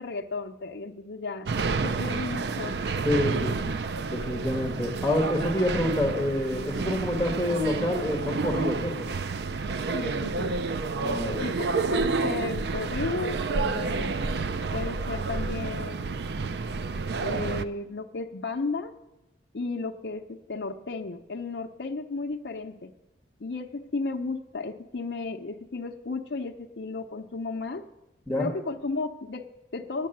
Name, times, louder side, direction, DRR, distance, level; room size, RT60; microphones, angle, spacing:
voice 1, 0.0-1.5 1.8-2.7 9.9-10.6 11.4-14.2 14.7-16.2 17.2-18.9 19.5-22.9 23.4-27.8 28.4-30.1, left 3 dB, 70° left, 4 dB, 0.6 m, -34 dB
sound 1, 1.5-17.6, right 4 dB, 65° right, 0.4 m, -30 dB
voice 2, 3.0-3.8 4.1-9.1 10.9-11.5 28.3-28.5, left 1 dB, ahead, 0 dB, 1.4 m, -27 dB
9.4 x 7.5 x 8.9 m, 0.95 s
head